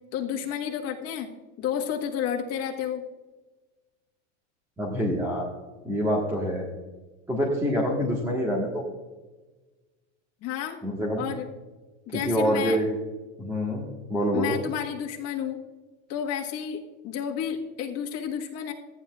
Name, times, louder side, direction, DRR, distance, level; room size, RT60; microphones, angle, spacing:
voice 1, 0.1-1.3 1.6-3.0 10.4-10.8 11.2-11.4 12.1-12.8 14.3-15.6 16.1-18.7, left 8 dB, 45° left, 1 dB, 1.5 m, -31 dB
voice 2, 4.8-5.5 5.8-6.6 7.3-8.8 10.8-11.3 12.1-12.9 13.4-14.6, equal, 10° right, -3 dB, 1.4 m, -26 dB
14.5 x 9.8 x 2.4 m, 1.2 s
supercardioid pair, 150°, 35 cm